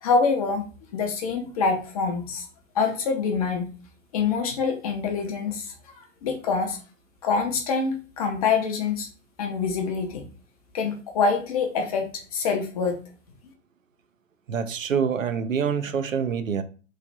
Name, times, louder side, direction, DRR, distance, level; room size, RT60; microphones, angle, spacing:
voice 1, 0.0-0.6 0.9-2.5 2.7-3.7 4.1-5.7 6.2-6.8 7.2-9.1 9.4-10.2 10.7-13.0, left 5 dB, 30° left, 0.6 m, -25 dB
voice 2, 14.5-16.6, right 7 dB, 90° right, 0.6 m, -26 dB
3.2 x 2.4 x 4.0 m
hypercardioid pair, 140°, 39 cm